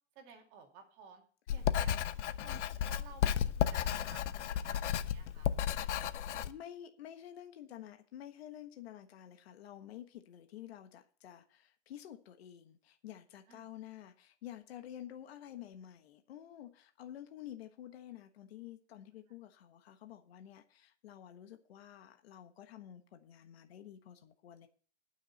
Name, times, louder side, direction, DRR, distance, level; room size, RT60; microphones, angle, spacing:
voice 1, 0.2-1.2 1.5-1.9 2.4-5.5 13.5-13.7, right 5 dB, 30° right, 2 dB, 2.4 m, -56 dB
Writing, 1.5-6.5, left 9 dB, 80° left, 0.9 m, -33 dB
voice 2, 6.5-24.7, left 11 dB, 60° left, 7 dB, 1.4 m, -50 dB
19.5 x 6.5 x 4.2 m, 0.43 s
supercardioid pair, 175°, 35 cm